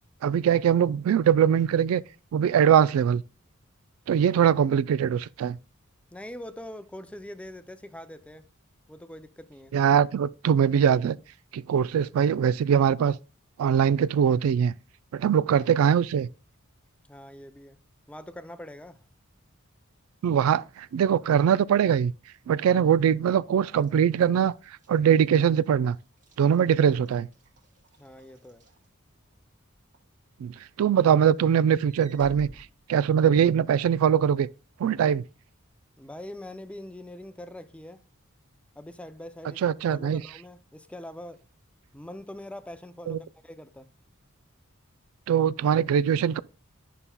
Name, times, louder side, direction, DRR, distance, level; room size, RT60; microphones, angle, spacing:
voice 1, 0.2-2.0 2.3-3.2 4.1-5.6 9.7-11.2 11.5-13.2 13.6-14.7 15.1-16.3 20.2-22.1 22.5-24.5 24.9-26.0 26.4-27.3 30.4-34.5 34.8-35.2 39.6-40.2 43.1-43.2 45.3-46.4, right 8 dB, 90° right, 0.3 m, -22 dB
voice 2, 6.1-8.5 8.9-9.7 17.1-17.8 18.1-19.0 28.0-28.6 36.0-38.0 38.8-39.6 39.9-41.5 41.9-43.9, left 1 dB, 5° left, 0.4 m, -43 dB
Walk footsteps / Slam, 23.7-29.4 29.9-30.2 30.6-33.6, equal, 35° right, 1.4 m, -53 dB
11.0 x 5.5 x 2.2 m
head